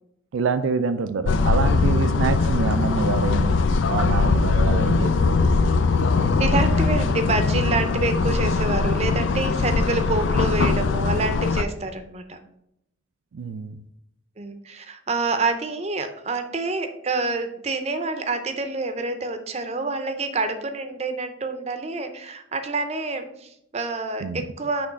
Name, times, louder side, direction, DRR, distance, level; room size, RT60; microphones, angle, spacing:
voice 1, 0.3-3.6 3.9-5.5 13.3-13.8 24.2-24.4, right 5 dB, 90° right, 11 dB, 0.4 m, -26 dB
sound 1, 1.3-11.6, left 4 dB, 75° left, 0.4 m, -21 dB
voice 2, 6.4-12.4 14.4-24.9, right 3 dB, 35° right, 8 dB, 0.6 m, -27 dB
6.0 x 3.2 x 5.1 m, 0.80 s
head